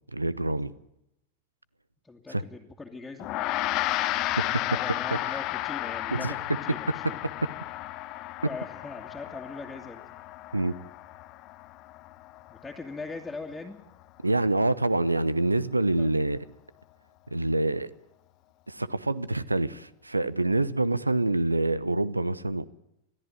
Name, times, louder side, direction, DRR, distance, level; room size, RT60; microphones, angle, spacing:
voice 1, 0.1-0.7 2.3-2.4 4.4-4.5 6.1-6.3 10.5-10.7 14.2-16.4 17.3-17.9 18.7-22.6, right 2 dB, 85° right, 19 dB, 0.8 m, -26 dB
voice 2, 2.0-3.3 4.6-7.2 8.4-10.0 12.5-13.8 16.0-16.1, left 3 dB, 10° left, -3 dB, 2.3 m, -41 dB
Gong, 3.2-12.8, left 16 dB, 40° left, 1.1 m, -33 dB
21.5 x 14.0 x 9.0 m, 0.84 s
figure-of-eight pair, 90°, 0 cm